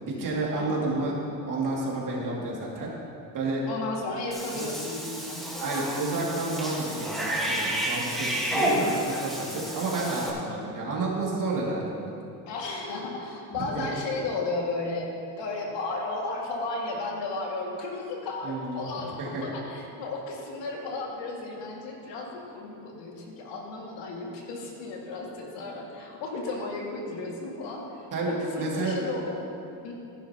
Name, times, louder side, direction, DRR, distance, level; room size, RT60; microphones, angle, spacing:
voice 1, 0.1-1.1 1.4-2.9 3.3-3.6 4.5-4.7 5.6-12.1 13.5-13.9 18.4-19.4 28.1-29.0, right 2 dB, 45° right, -4 dB, 2.3 m, -30 dB
voice 2, 3.7-5.5 12.5-29.4 29.8-29.9, left 3 dB, 80° left, -1 dB, 2.1 m, -34 dB
Cat / Bathtub (filling or washing), 4.3-10.3, right 1 dB, ahead, 1.4 m, -30 dB
14.0 x 11.0 x 2.9 m, 2.6 s
cardioid pair, 145°, 43 cm